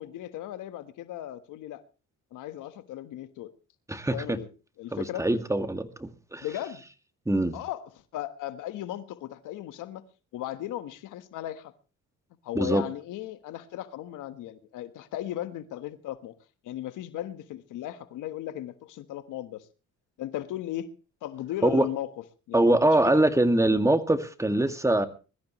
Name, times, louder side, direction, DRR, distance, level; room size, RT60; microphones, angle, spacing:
voice 1, 0.0-1.8 2.3-3.5 4.1-4.5 4.8-5.3 6.4-6.8 7.5-10.1 10.3-11.7 12.4-16.4 16.6-19.7 20.2-20.9 21.2-22.1 22.5-22.8 23.6-23.8, left 13 dB, 90° left, 1.4 m, -36 dB
voice 2, 3.9-4.4 4.9-6.5 7.3-7.6 12.6-12.8 21.6-21.9 22.5-25.1, right 1 dB, 10° right, 2.0 m, -23 dB
22.0 x 14.0 x 3.1 m
cardioid pair, 90°, 30 cm